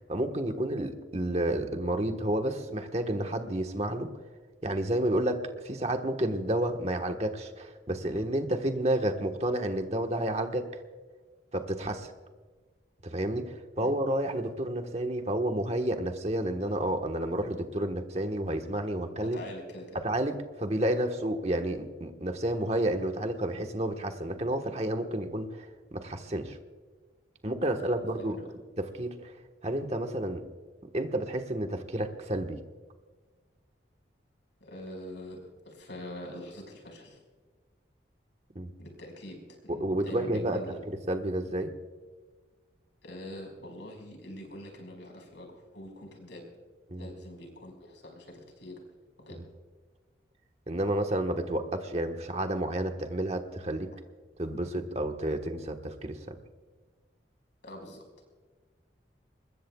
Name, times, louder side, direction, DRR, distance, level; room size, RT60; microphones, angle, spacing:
voice 1, 0.1-4.1 4.6-10.7 11.5-12.1 13.0-19.4 20.0-25.7 25.9-26.6 27.4-28.4 28.8-29.3 29.6-30.4 30.9-32.6 38.5-38.7 39.7-40.6 40.9-41.7 46.9-47.1 49.4-49.5 50.7-53.9 54.4-56.4, right 1 dB, 35° right, 5 dB, 1.3 m, -30 dB
voice 2, 19.2-20.0 27.8-28.4 34.6-35.4 35.7-37.2 38.8-40.8 43.0-46.5 47.0-48.8 49.3-49.4 57.6-58.0, left 1 dB, 75° left, 1 dB, 5.1 m, -44 dB
24.5 x 21.0 x 2.3 m, 1.4 s
head